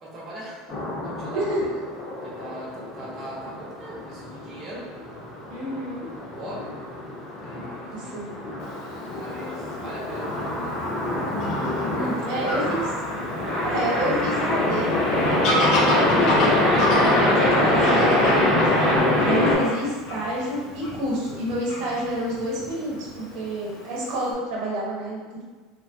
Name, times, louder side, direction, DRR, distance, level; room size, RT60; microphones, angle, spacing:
voice 1, 0.0-0.7 1.0-1.4 2.2-4.9 6.1-6.7 7.4-8.2 9.0-10.8 11.9-12.7, right 1 dB, 25° right, -6 dB, 0.7 m, -40 dB
sound 1, 0.7-19.5, left 1 dB, 25° left, 0.8 m, -24 dB
voice 2, 1.3-1.7 5.5-6.1 7.9-8.4 11.8-12.9 13.6-18.8 19.2-25.4, right 1 dB, 60° right, -5 dB, 1.0 m, -29 dB
Fowl / Bird vocalization bird call bird song, 8.6-24.3, left 1 dB, 50° left, 0.6 m, -32 dB
3.2 x 2.1 x 2.6 m, 1.4 s
supercardioid pair, 155°, 0 cm